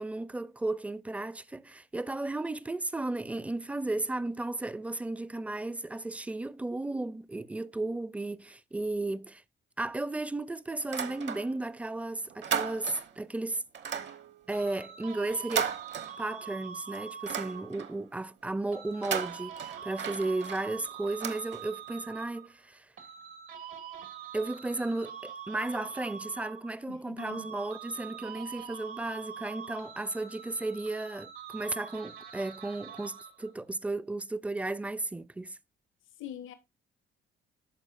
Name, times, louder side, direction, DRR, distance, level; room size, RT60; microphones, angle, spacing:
voice 1, 0.0-9.4 9.8-13.6 14.5-15.7 16.2-22.9 24.3-35.6, right 2 dB, 5° right, 0.4 m, -34 dB
sound 1, 10.8-11.8 12.1-13.2 13.7-16.6 16.9-18.1 18.9-22.0, right 8 dB, 65° right, 1.0 m, -36 dB
sound 2, 14.5-17.9 18.7-22.5 23.0-26.9 27.2-33.5, right 8 dB, 85° right, 2.0 m, -44 dB
voice 2, 26.9-27.5 36.2-36.5, left 10 dB, 85° left, 1.1 m, -43 dB
13.5 x 4.6 x 2.5 m
cardioid pair, 90°, 20 cm